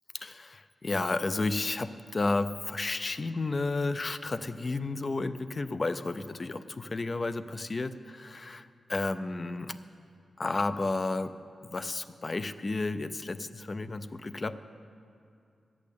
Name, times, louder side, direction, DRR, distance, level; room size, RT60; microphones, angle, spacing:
voice 1, 0.1-9.8 10.4-11.3 11.6-14.6, left 3 dB, 30° left, 12 dB, 0.4 m, -32 dB
11.0 x 8.4 x 8.4 m, 2.4 s
wide cardioid pair, 165°, 0 cm